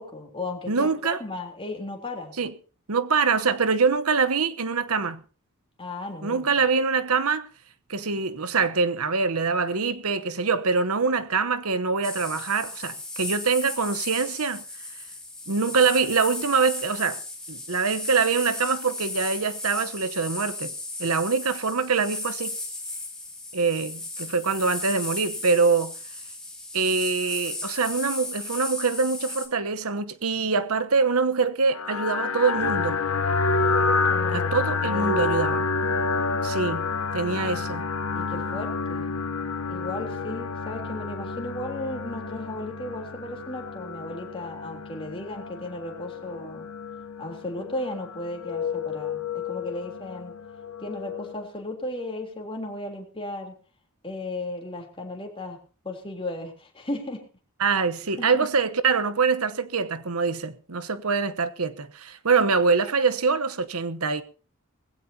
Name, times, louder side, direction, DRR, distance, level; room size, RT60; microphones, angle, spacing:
voice 1, 0.0-2.3 5.8-6.5 34.1-35.3 37.3-37.4 38.1-39.1 39.7-46.7 47.2-50.3 50.8-53.6 54.0-55.6 55.8-57.2 58.2-58.3, left 2 dB, 25° left, 3.5 m, -35 dB
voice 2, 0.7-1.2 2.4-2.5 2.9-5.2 6.2-7.5 7.9-14.6 15.5-17.2 17.5-20.7 21.0-22.6 23.5-25.9 26.7-33.0 34.3-35.7 36.4-37.9 57.6-64.2, right 4 dB, 80° right, 1.1 m, -24 dB
sound 1, 12.0-29.5, left 2 dB, 5° left, 3.5 m, -35 dB
sound 2, 31.7-51.4, left 4 dB, 75° left, 1.0 m, -29 dB
19.5 x 16.0 x 2.9 m
head